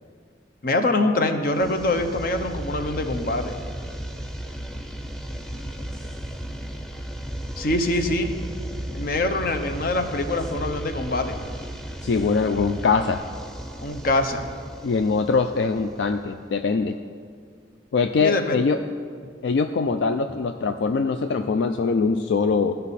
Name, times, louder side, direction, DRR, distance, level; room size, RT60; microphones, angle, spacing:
voice 1, 0.6-3.6 7.6-8.4 8.9-11.4 13.8-14.5 18.2-18.6, left 2 dB, 50° left, 7 dB, 0.7 m, -24 dB
sound 1, 1.5-16.3, right 1 dB, 5° left, 0.5 m, -35 dB
voice 2, 12.0-13.2 14.8-17.0 17.9-18.8 19.4-22.7, left 4 dB, 70° left, 7 dB, 0.4 m, -22 dB
15.5 x 5.4 x 4.1 m, 2.2 s
head